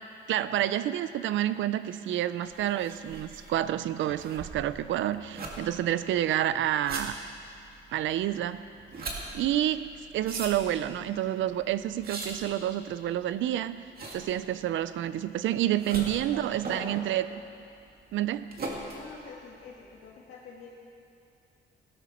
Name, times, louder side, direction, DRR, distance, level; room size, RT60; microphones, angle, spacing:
voice 1, 0.3-7.2 7.9-8.6 9.0-9.9 10.1-13.8 14.1-17.4 18.1-18.5, right 12 dB, 75° right, 14 dB, 0.5 m, -29 dB
sound 1, 2.4-20.1, right 2 dB, 50° right, 2.2 m, -41 dB
voice 2, 18.9-20.7, left 5 dB, 80° left, -5 dB, 1.8 m, -48 dB
16.5 x 12.0 x 4.4 m, 2.5 s
cardioid pair, 90°, 20 cm